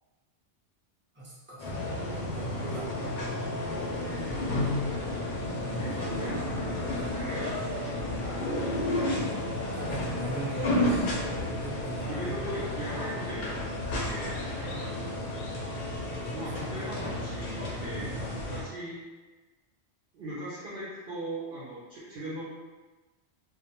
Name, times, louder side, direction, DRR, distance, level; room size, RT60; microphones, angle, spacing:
voice 1, 1.1-2.9 3.6-4.2 5.6-7.1 9.7-11.1 11.6-12.4 14.7-14.9 16.1-16.4 16.8-16.9 18.0-18.1, right 1 dB, 15° right, -8 dB, 0.5 m, -41 dB
sound 1, 1.6-18.6, left 1 dB, 55° left, 0.5 m, -32 dB
voice 2, 5.8-9.2 12.1-14.5 16.3-19.0 20.1-22.4, right 1 dB, 60° right, -8 dB, 0.7 m, -39 dB
2.2 x 2.1 x 2.9 m, 1.2 s
omnidirectional pair, 1.2 m